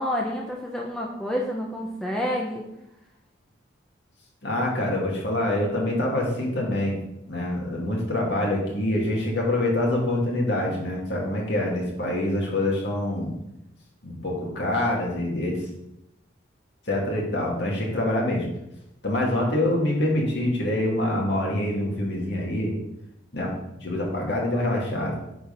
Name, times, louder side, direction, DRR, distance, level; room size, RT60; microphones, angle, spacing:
voice 1, 0.0-2.7, equal, 5° left, -2 dB, 0.9 m, -29 dB
voice 2, 4.4-7.0 7.3-13.3 14.0-15.6 16.9-18.5 19.0-22.7 23.3-23.5 23.8-25.1, left 1 dB, 55° left, -3 dB, 2.6 m, -25 dB
9.7 x 4.7 x 5.6 m, 0.85 s
head